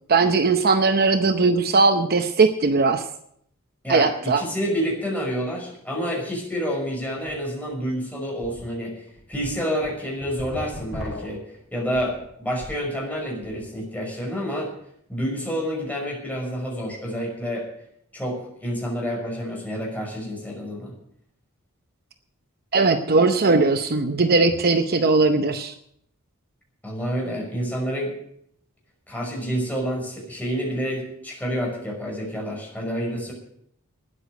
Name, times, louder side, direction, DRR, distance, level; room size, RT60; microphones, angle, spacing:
voice 1, 0.1-3.0 3.9-4.4 22.7-25.7, right 3 dB, 45° right, 8 dB, 0.8 m, -19 dB
voice 2, 3.8-9.0 9.3-11.4 11.7-14.7 15.1-17.7 18.1-20.9 26.8-28.1 29.1-33.3, equal, 5° left, -2 dB, 5.9 m, -28 dB
sound 1, 7.3-7.4 7.7-7.8 8.4-8.6 9.1-12.9 13.2-13.7, left 1 dB, 70° left, 5.0 m, -38 dB
13.0 x 10.0 x 7.9 m, 0.70 s
head